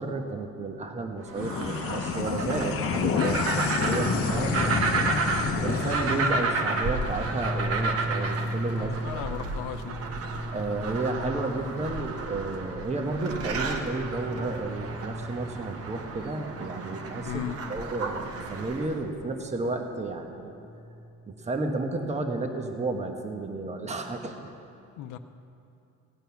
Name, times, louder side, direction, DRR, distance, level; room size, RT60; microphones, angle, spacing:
voice 1, 0.0-5.2 5.6-9.0 10.5-17.4 17.7-20.6 21.3-24.5, right 3 dB, 20° right, 4 dB, 1.2 m, -32 dB
Simulated jet engine burner, 1.3-8.1, left 7 dB, 45° left, 0.9 m, -30 dB
sound 1, 1.3-19.0, right 3 dB, 50° right, 1.3 m, -32 dB
sound 2, 4.0-22.3, equal, ahead, 0.5 m, -38 dB
voice 2, 8.7-10.0 17.2-17.6 25.0-25.2, left 11 dB, 80° left, 9 dB, 0.8 m, -36 dB
17.5 x 9.0 x 5.8 m, 2.6 s
cardioid pair, 125°, 30 cm